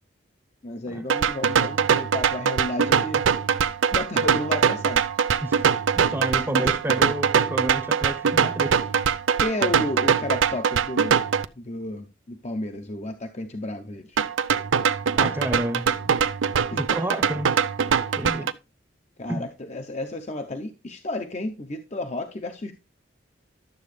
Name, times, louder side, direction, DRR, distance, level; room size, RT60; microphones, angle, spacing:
voice 1, 0.6-3.2 3.9-5.1 6.4-6.7 9.4-11.2 11.6-14.2 16.7-16.9 19.2-22.7, left 1 dB, 35° left, 0.7 m, -32 dB
sound 1, 1.1-11.5 14.2-18.5, right 7 dB, 80° right, 0.5 m, -22 dB
voice 2, 5.9-9.1 15.1-16.1 16.8-17.6 18.1-18.5 19.3-19.4, right 1 dB, 10° right, 0.8 m, -30 dB
11.5 x 7.5 x 3.2 m
head